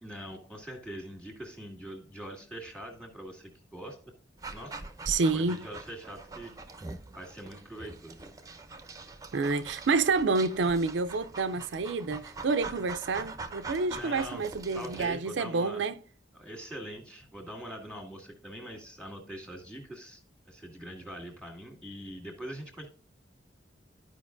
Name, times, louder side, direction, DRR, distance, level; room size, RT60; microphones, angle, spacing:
voice 1, 0.0-4.0 4.5-4.7 5.3-6.5 7.1-8.2 13.9-14.5 14.7-15.8 16.3-22.9, equal, 5° left, 1.9 m, -43 dB
Dog, 4.4-15.1, right 3 dB, 20° right, 0.6 m, -43 dB
voice 2, 5.1-5.6 9.3-16.0, right 4 dB, 70° right, 0.4 m, -28 dB
13.0 x 5.1 x 2.5 m
head